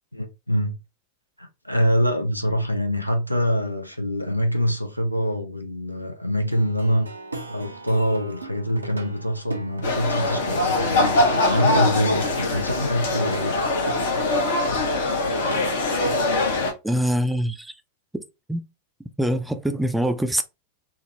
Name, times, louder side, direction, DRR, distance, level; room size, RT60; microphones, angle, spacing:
voice 1, 0.1-0.8 1.4-7.1 7.5-13.7, equal, 90° left, 0.5 m, -25 dB
Plucked string instrument, 6.5-16.3, right 2 dB, 80° right, 0.5 m, -37 dB
sound 1, 9.8-16.7, left 2 dB, 60° left, 0.8 m, -23 dB
voice 2, 16.8-17.7 18.1-18.2 18.5-18.6 19.2-20.4, equal, 5° right, 0.4 m, -24 dB
3.5 x 2.0 x 2.7 m
figure-of-eight pair, 90°, 0 cm